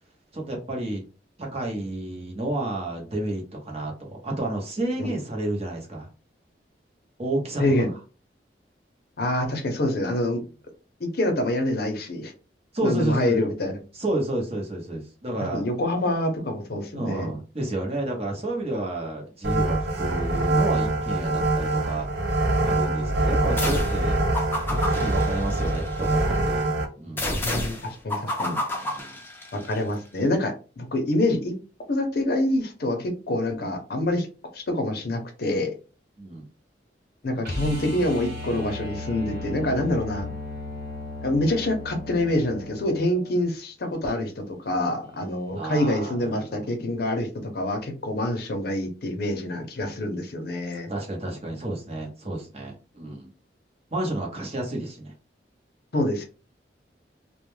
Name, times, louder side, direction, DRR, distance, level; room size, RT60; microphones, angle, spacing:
voice 1, 0.3-1.0 1.4-6.1 7.2-7.6 12.7-13.4 14.0-15.6 16.9-22.1 22.6-24.2 24.6-26.6 27.0-27.3 28.8-29.2 36.2-36.4 45.6-46.6 50.9-53.3 53.9-55.1, right 1 dB, 35° right, 0 dB, 0.8 m, -30 dB
voice 2, 7.6-7.9 9.2-10.4 11.0-12.3 12.8-13.8 15.5-17.3 27.4-28.6 29.5-31.5 31.9-34.3 34.5-35.7 37.2-40.3 41.2-50.9 55.9-56.3, left 1 dB, 60° left, 5 dB, 0.6 m, -26 dB
sound 1, 19.4-26.8, right 2 dB, 75° right, 0.5 m, -24 dB
sound 2, 23.6-24.0 24.3-26.1 27.2-29.8, left 1 dB, 10° left, 0.5 m, -30 dB
sound 3, 37.4-43.4 45.9-46.0, left 2 dB, 55° right, 1.1 m, -35 dB
2.2 x 2.1 x 3.1 m, 0.34 s
head